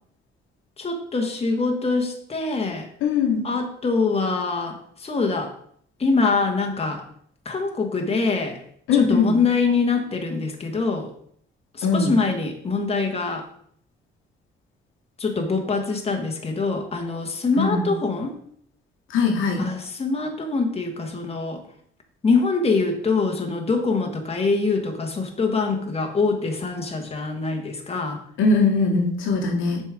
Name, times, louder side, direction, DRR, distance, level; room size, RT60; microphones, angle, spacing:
voice 1, 0.8-2.9 3.4-5.5 6.0-7.0 7.4-8.6 8.9-11.1 11.8-13.5 15.2-18.3 19.6-21.6 22.2-28.2, left 4 dB, 30° left, 3 dB, 1.5 m, -24 dB
voice 2, 3.0-3.4 8.9-9.3 11.8-12.1 17.6-17.8 19.1-19.7 28.4-29.8, left 4 dB, 85° left, 1 dB, 1.6 m, -20 dB
7.1 x 4.4 x 5.0 m, 0.63 s
cardioid pair, 90°, 20 cm